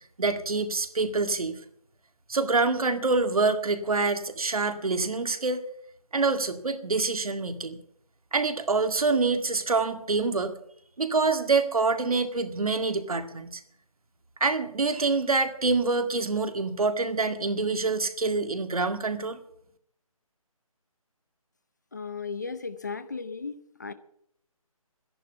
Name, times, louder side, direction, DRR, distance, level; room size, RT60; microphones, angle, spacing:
voice 1, 0.2-1.6 2.3-5.6 6.1-7.8 8.3-10.5 11.0-13.6 14.4-19.4, right 3 dB, 75° right, 9 dB, 2.0 m, -26 dB
voice 2, 21.9-23.9, left 4 dB, 30° left, 13 dB, 0.6 m, -36 dB
12.0 x 11.0 x 7.1 m, 0.70 s
hypercardioid pair, 175°, 19 cm